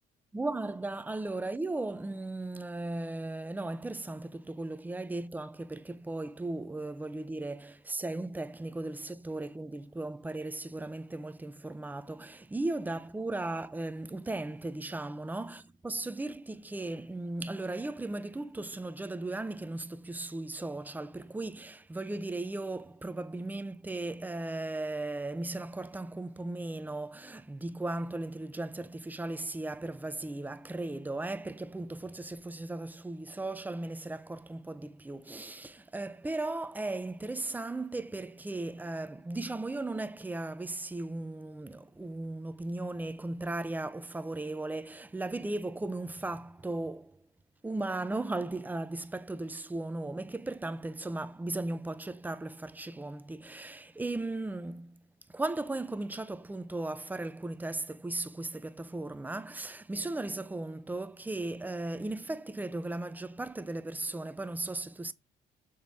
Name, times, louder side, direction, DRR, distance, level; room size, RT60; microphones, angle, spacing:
voice 1, 0.3-47.2 47.6-55.0 55.3-65.1, right 2 dB, 10° right, 0.6 m, -36 dB
7.1 x 3.9 x 4.9 m
cardioid pair, 110°, 17 cm